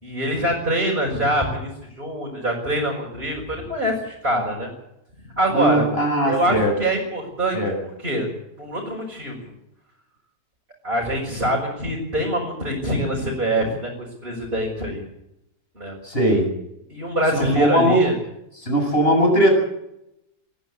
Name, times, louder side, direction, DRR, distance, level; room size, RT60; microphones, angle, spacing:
voice 1, 0.0-1.7 2.0-4.7 5.4-5.8 6.2-7.6 8.0-8.3 8.6-9.5 10.8-13.9 14.2-15.1 15.8-15.9 16.9-18.1, right 1 dB, 30° right, -3 dB, 5.9 m, -24 dB
voice 2, 5.5-6.7 7.5-7.7 16.0-16.5 17.3-18.0 18.6-19.6, right 1 dB, 35° left, 2 dB, 7.5 m, -19 dB
22.0 x 14.5 x 8.5 m, 0.84 s
omnidirectional pair, 1.8 m